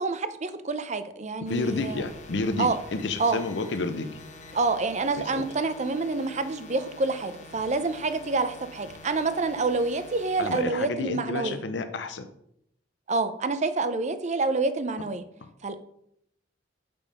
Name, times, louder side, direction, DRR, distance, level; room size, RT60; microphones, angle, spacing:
voice 1, 0.0-2.0 2.6-2.8 3.2-3.4 4.5-11.6 13.1-15.2 15.6-15.9, right 3 dB, 40° right, 11 dB, 0.6 m, -27 dB
voice 2, 1.4-4.1 5.2-5.5 10.4-12.3 15.4-15.5, left 3 dB, 65° left, 8 dB, 0.6 m, -30 dB
sound 1, 1.4-10.6, left 2 dB, 40° left, 1.0 m, -46 dB
6.8 x 5.4 x 5.3 m, 0.74 s
head